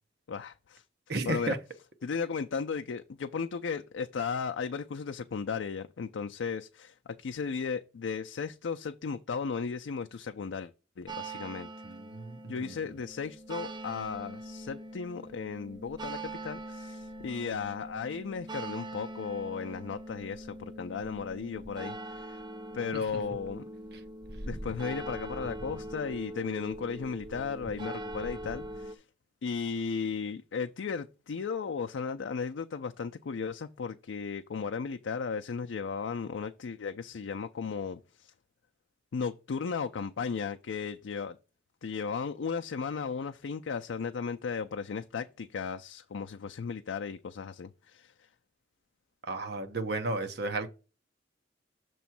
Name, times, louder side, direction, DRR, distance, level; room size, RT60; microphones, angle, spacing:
voice 1, 0.3-0.8 1.3-1.6 2.0-10.7 11.0-11.7 12.5-22.4 22.7-23.6 24.5-29.0 29.4-38.3 39.1-41.4 41.8-48.3, left 5 dB, 80° left, 0.4 m, -35 dB
voice 2, 1.1-1.6 11.8-12.7 22.9-23.0 49.2-50.7, right 2 dB, 60° right, 0.9 m, -33 dB
sound 1, 11.1-29.0, right 1 dB, 25° right, 0.6 m, -42 dB
6.9 x 3.1 x 5.8 m
head